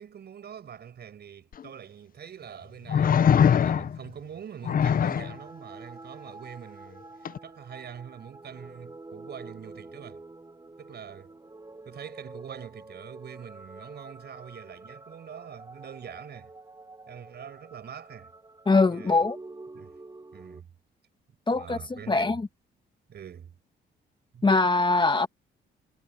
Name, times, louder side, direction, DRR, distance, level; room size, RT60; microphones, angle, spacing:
voice 1, 0.0-7.0 7.4-10.2 10.8-11.3 11.9-16.5 17.1-18.3 18.9-19.3 19.7-20.0 20.3-20.7 21.5-22.4 23.1-23.6 24.3-24.5, right 8 dB, 55° right, 5.8 m, -44 dB
sound 1, 1.5-1.6 2.9-4.1 4.6-5.3 7.2-7.4, left 8 dB, 45° left, 0.7 m, -22 dB
sound 2, 5.1-20.6, right 2 dB, 20° right, 5.9 m, -47 dB
voice 2, 18.7-19.4 21.5-22.5 24.4-25.3, left 3 dB, 25° left, 1.7 m, -22 dB
cardioid pair, 90°, 20 cm